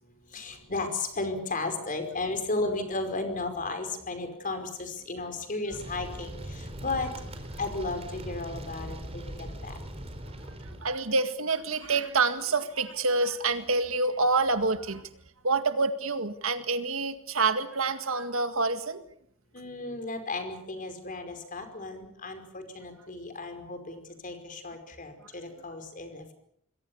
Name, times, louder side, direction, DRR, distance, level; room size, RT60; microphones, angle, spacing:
voice 1, 0.3-7.1 7.6-9.8 19.5-26.3, left 3 dB, 40° left, 7 dB, 5.1 m, -34 dB
sound 1, 5.7-11.0, right 1 dB, 30° right, 4.3 m, -40 dB
voice 2, 10.7-15.1 15.4-19.0, right 3 dB, 70° right, 9 dB, 1.9 m, -27 dB
27.0 x 21.5 x 7.1 m, 0.70 s
head